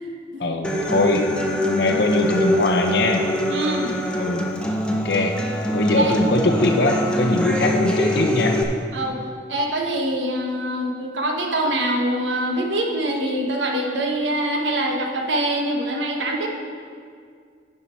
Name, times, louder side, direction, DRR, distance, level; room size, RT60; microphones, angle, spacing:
voice 1, 0.4-1.3 1.7-3.2 4.2-4.4 4.9-5.4 5.7-8.6, left 2 dB, 60° left, 4 dB, 0.7 m, -21 dB
Human voice / Acoustic guitar, 0.6-8.6, equal, 5° left, 0.6 m, -24 dB
voice 2, 3.5-3.9 5.9-6.2 8.9-9.2 9.5-16.5, right 1 dB, 80° right, 1 dB, 1.2 m, -24 dB
11.0 x 5.6 x 4.4 m, 2.1 s
head